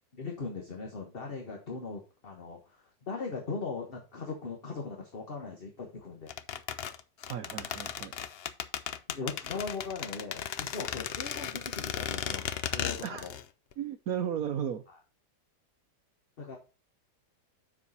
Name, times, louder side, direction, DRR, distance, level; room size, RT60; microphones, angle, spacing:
voice 1, 0.1-6.3 9.1-13.3 14.9-15.0 16.4-16.6, left 4 dB, 35° left, 1 dB, 1.4 m, -39 dB
sound 1, 6.3-13.4 13.7-13.8, left 9 dB, 80° left, 0.5 m, -36 dB
voice 2, 7.2-8.1 13.0-13.3 13.8-14.8, right 9 dB, 65° right, 8 dB, 1.1 m, -34 dB
6.9 x 5.0 x 5.4 m, 0.32 s
omnidirectional pair, 1.8 m